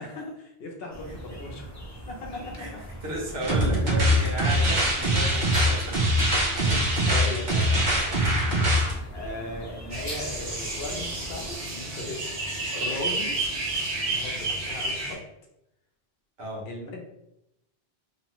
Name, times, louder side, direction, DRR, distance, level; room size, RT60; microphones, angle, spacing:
voice 1, 0.0-1.7 2.1-2.6 6.3-8.3 9.1-12.4 12.7-13.4 14.0-15.2 16.6-17.0, left 2 dB, 70° left, 1 dB, 0.9 m, -37 dB
sound 1, 0.9-11.6, equal, 25° left, 0.4 m, -41 dB
voice 2, 3.0-6.0 6.5-6.9 16.4-16.7, right 1 dB, 70° right, -3 dB, 1.1 m, -34 dB
sound 2, 3.4-8.9, equal, 55° right, 0.7 m, -23 dB
sound 3, 9.9-15.1, right 2 dB, 90° right, 1.1 m, -31 dB
2.9 x 2.1 x 2.9 m, 0.86 s
omnidirectional pair, 1.1 m